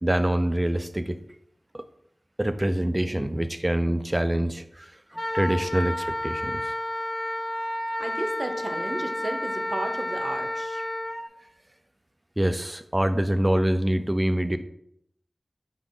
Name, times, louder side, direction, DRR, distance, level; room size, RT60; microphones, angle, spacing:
voice 1, 0.0-1.2 1.7-1.8 2.4-6.7 12.4-14.6, right 1 dB, 20° right, 10 dB, 0.5 m, -25 dB
Wind instrument woodwind instrument, 5.1-11.2, left 1 dB, 45° left, 1.4 m, -30 dB
voice 2, 8.0-10.8, right 2 dB, 55° right, 6 dB, 0.8 m, -33 dB
6.1 x 4.7 x 3.8 m, 0.73 s
wide cardioid pair, 50°, 0 cm